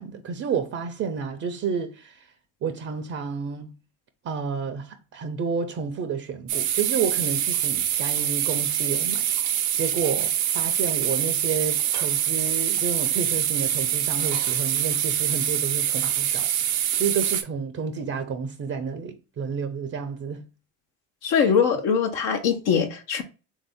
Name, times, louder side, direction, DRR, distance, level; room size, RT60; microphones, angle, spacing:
voice 1, 0.0-2.3 2.6-3.7 4.2-16.5 16.8-20.4 21.3-21.5, right 6 dB, 35° right, 0.6 m, -30 dB
sound 1, 6.5-17.4, right 10 dB, 85° right, 0.8 m, -25 dB
voice 2, 21.2-23.2, left 7 dB, 65° left, 0.9 m, -22 dB
3.5 x 2.7 x 3.5 m
hypercardioid pair, 70°, 41 cm